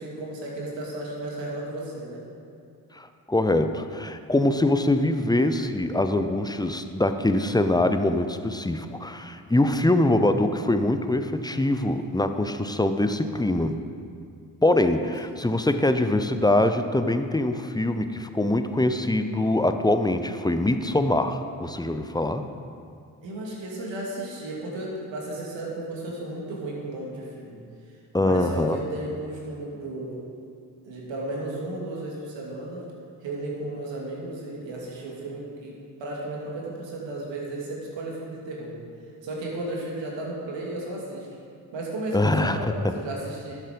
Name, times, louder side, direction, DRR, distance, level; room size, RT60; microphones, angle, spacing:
voice 1, 0.0-2.2 23.2-27.6 28.2-30.2 30.8-32.9 33.2-38.7 39.2-41.3 41.7-43.6, right 1 dB, 65° right, -3 dB, 2.6 m, -34 dB
voice 2, 2.9-13.8 14.6-22.5 28.1-28.8 42.1-42.6, left 1 dB, 10° left, 8 dB, 0.7 m, -23 dB
12.0 x 7.4 x 5.2 m, 2.3 s
hypercardioid pair, 40°, 47 cm